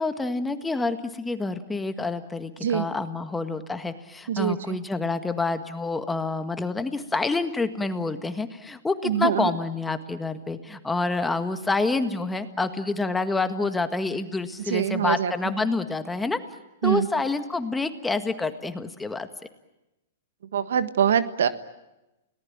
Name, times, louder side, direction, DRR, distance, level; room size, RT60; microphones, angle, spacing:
voice 1, 0.0-16.4 16.8-19.3, left 3 dB, 10° left, 9 dB, 1.7 m, -28 dB
voice 2, 9.0-9.5 14.7-15.3 16.8-17.1 20.5-21.5, right 9 dB, 75° right, 12 dB, 1.5 m, -23 dB
30.0 x 18.5 x 8.8 m, 0.96 s
hypercardioid pair, 125°, 0 cm